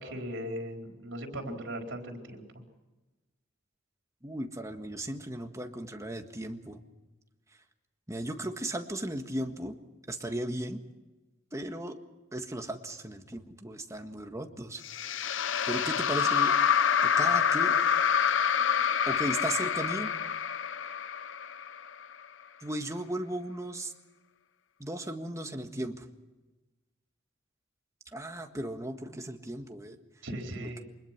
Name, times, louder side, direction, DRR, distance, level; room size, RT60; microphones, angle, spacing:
voice 1, 0.0-2.4 30.2-30.8, equal, 70° right, 2 dB, 4.5 m, -38 dB
voice 2, 4.2-6.8 8.1-9.7 10.1-10.8 11.5-12.0 12.3-14.8 15.7-16.5 17.0-17.8 19.1-20.1 22.6-23.9 24.8-26.1 28.1-30.0 30.6-30.7, right 1 dB, 15° right, 5 dB, 1.7 m, -36 dB
sound 1, 14.8-22.1, left 7 dB, 70° left, 0.8 m, -27 dB
25.0 x 20.5 x 6.0 m, 1.1 s
head